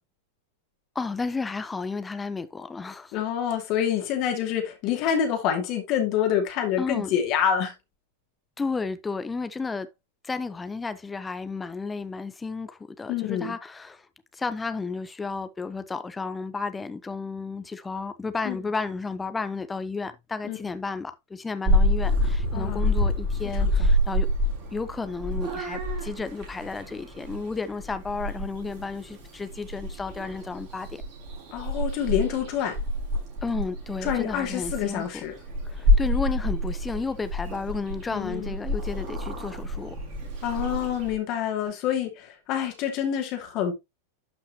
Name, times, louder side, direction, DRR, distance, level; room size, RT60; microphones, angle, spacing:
voice 1, 0.9-3.1 6.8-7.1 8.6-9.9 10.2-14.1 14.3-24.3 24.7-31.0 33.4-35.2 35.6-40.0, left 4 dB, 10° left, 0.8 m, -32 dB
voice 2, 3.1-7.7 13.1-13.5 18.4-18.6 20.4-20.6 22.5-22.9 23.6-23.7 31.5-32.8 34.0-35.3 38.1-38.5 40.4-43.7, left 9 dB, 40° left, 2.5 m, -27 dB
Purr / Meow, 21.7-41.2, left 1 dB, 40° right, 5.2 m, -28 dB
12.0 x 5.6 x 3.0 m
figure-of-eight pair, 90°, 0 cm